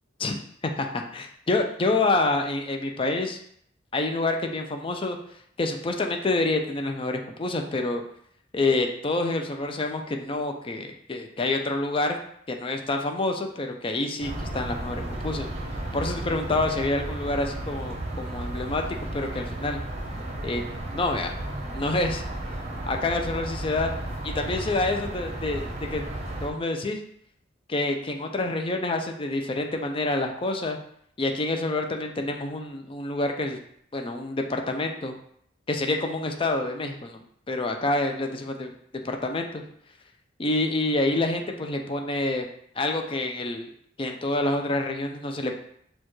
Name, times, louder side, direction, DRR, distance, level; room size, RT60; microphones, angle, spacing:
voice 1, 0.8-3.4 3.9-5.2 5.6-8.0 8.5-12.2 12.5-15.5 15.9-18.8 19.1-19.8 20.4-20.6 20.9-21.4 21.7-22.2 22.9-23.9 24.2-26.0 26.4-27.0 27.7-30.8 31.2-33.6 33.9-35.1 35.7-37.2 37.5-38.7 39.0-39.6 40.4-42.5 42.8-43.7 44.0-45.5, left 2 dB, 30° left, 4 dB, 0.4 m, -27 dB
sound 1, 14.2-26.5, right 1 dB, 35° right, 0.7 m, -34 dB
6.6 x 2.3 x 3.1 m, 0.68 s
head